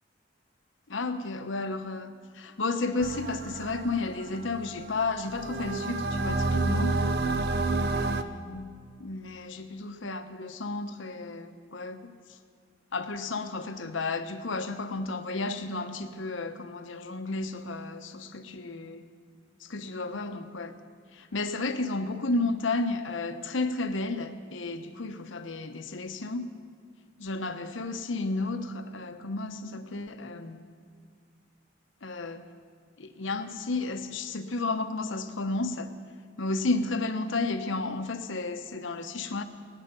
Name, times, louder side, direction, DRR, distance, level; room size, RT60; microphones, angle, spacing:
voice 1, 0.9-6.9 7.9-8.7 9.0-12.1 12.9-19.0 19.6-20.7 21.1-26.5 27.2-30.6 32.0-32.4 33.0-35.9 36.4-39.4, left 3 dB, 80° left, 8 dB, 1.0 m, -32 dB
sound 1, 3.0-8.2, right 3 dB, 55° right, 0.7 m, -29 dB
18.5 x 10.0 x 6.8 m, 2.1 s
head